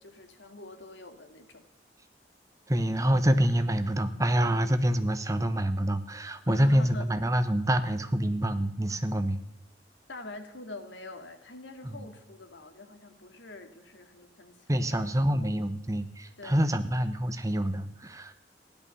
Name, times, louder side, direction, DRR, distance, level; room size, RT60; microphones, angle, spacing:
voice 1, 0.0-1.6 6.5-7.1 10.1-15.6 16.4-16.7, left 2 dB, 85° left, 7 dB, 2.1 m, -45 dB
voice 2, 2.7-9.4 11.8-12.0 14.7-18.4, equal, 20° right, 10 dB, 1.0 m, -26 dB
16.0 x 11.0 x 7.0 m, 0.85 s
head